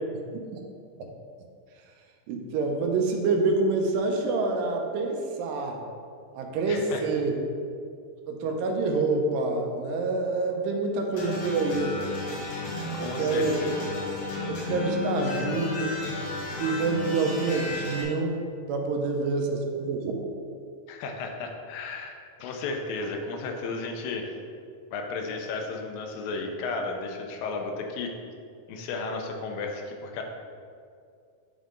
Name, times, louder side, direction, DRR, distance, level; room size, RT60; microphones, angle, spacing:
voice 1, 2.3-5.8 6.3-7.3 8.3-12.2 13.0-13.6 14.5-16.0 16.6-18.4 18.7-20.4, right 3 dB, 90° right, 2 dB, 2.3 m, -27 dB
voice 2, 6.7-7.0 12.9-13.9 20.9-24.3 24.9-28.1 28.7-30.2, left 3 dB, 85° left, 3 dB, 2.4 m, -34 dB
sound 1, 11.1-18.0, left 3 dB, 70° left, 2.7 m, -33 dB
9.8 x 3.6 x 3.7 m, 2.3 s
omnidirectional pair, 3.9 m